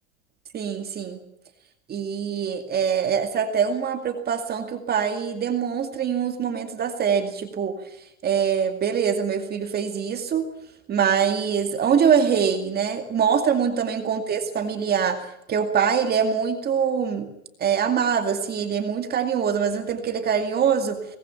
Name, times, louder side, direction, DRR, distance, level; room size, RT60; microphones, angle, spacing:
voice 1, 0.5-1.2 1.9-7.8 8.2-10.5 10.9-17.3 17.6-21.2, right 7 dB, 25° right, 6 dB, 2.3 m, -24 dB
22.5 x 19.5 x 7.2 m, 0.80 s
supercardioid pair, 150°, 40 cm